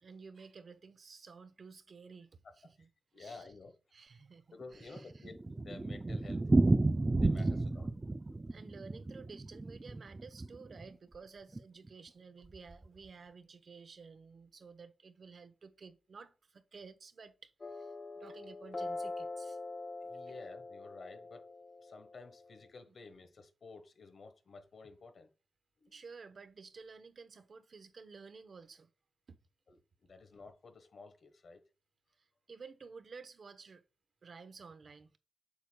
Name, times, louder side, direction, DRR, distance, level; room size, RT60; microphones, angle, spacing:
voice 1, 0.0-2.9 3.2-3.5 3.9-5.2 7.4-7.5 8.5-19.6 22.9-23.0 25.9-28.9 29.3-29.4 32.2-33.8 34.2-35.1, right 5 dB, 70° right, 0.9 m, -53 dB
voice 2, 3.1-3.8 4.5-6.4 7.2-8.2 20.0-21.5 21.8-25.3 25.8-25.9 29.7-31.6, left 3 dB, 70° left, 1.3 m, -52 dB
Thunder, 4.6-10.9 11.1-11.2 11.5-11.6 11.9-12.0 12.5-12.9, right 2 dB, 30° right, 0.4 m, -31 dB
sound 1, 17.6-22.7, left 2 dB, 50° left, 1.6 m, -44 dB
8.1 x 6.9 x 2.3 m
cardioid pair, 55°, 0 cm